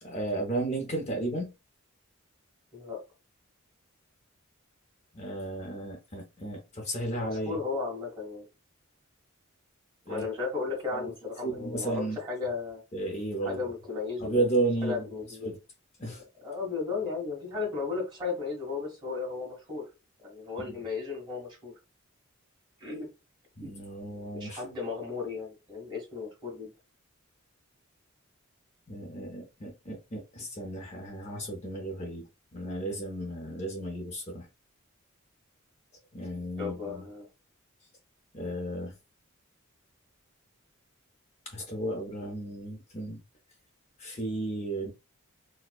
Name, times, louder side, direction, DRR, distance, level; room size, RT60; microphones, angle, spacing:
voice 1, 0.0-1.5 5.1-7.6 10.1-10.2 10.9-11.1 11.4-12.2 12.9-13.6 14.2-15.0 15.4-15.6 16.0-16.2 20.7-20.8 23.6-24.6 28.9-32.2 32.5-34.5 36.1-37.0 38.3-38.9 41.5-43.2 44.0-44.9, right 2 dB, 30° left, 0.6 m, -33 dB
voice 2, 7.2-8.5 10.1-12.8 13.4-15.5 16.1-16.2 16.4-19.9 20.2-21.7 22.8-23.1 23.6-23.7 24.3-26.7 36.6-37.3, left 4 dB, 20° right, 1.7 m, -35 dB
4.2 x 2.1 x 2.3 m
head